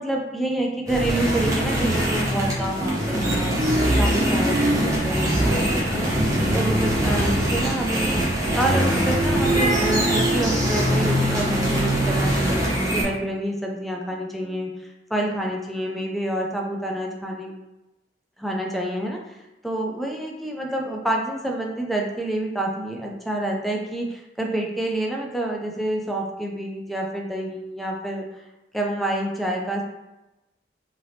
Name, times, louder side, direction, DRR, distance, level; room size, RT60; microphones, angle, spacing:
voice 1, 0.0-3.6 4.0-6.1 6.5-17.5 18.4-19.4 19.6-28.4 28.7-29.8, right 1 dB, ahead, 0 dB, 0.4 m, -28 dB
sound 1, 0.9-13.0, right 1 dB, 20° right, 0.8 m, -22 dB
3.3 x 2.7 x 2.8 m, 1.0 s
head